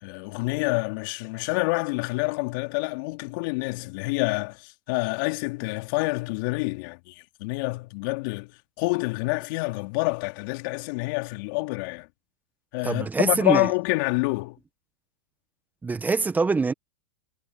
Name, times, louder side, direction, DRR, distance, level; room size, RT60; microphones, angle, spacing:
voice 1, 0.0-8.5 8.8-12.1 12.7-14.6, left 26 dB, 55° left, 3.5 m, -27 dB
voice 2, 12.8-13.7 15.8-16.7, right 4 dB, 15° right, 1.6 m, -24 dB
hypercardioid pair, 105°, 13 cm